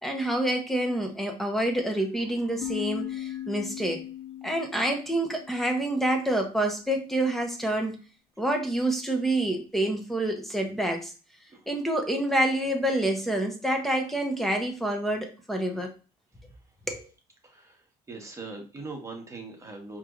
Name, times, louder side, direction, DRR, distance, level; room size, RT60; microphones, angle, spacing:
voice 1, 0.0-4.1 4.4-8.0 8.4-11.1 11.7-15.9 16.9-17.1, right 1 dB, ahead, 3 dB, 0.9 m, -27 dB
sound 1, 2.6-6.2, left 12 dB, 40° left, 0.4 m, -38 dB
voice 2, 17.4-20.0, right 3 dB, 20° right, 1 dB, 1.3 m, -41 dB
4.8 x 3.0 x 2.5 m, 0.34 s
cardioid pair, 105°, 16 cm